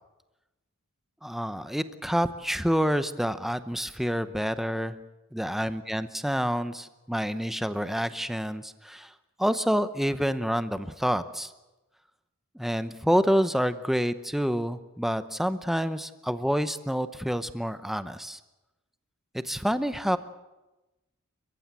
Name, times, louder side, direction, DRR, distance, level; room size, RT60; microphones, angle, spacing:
voice 1, 1.2-5.0 5.3-9.1 9.4-11.5 12.5-18.4 19.3-20.2, equal, ahead, 11 dB, 0.8 m, -28 dB
29.5 x 15.5 x 8.4 m, 1.1 s
head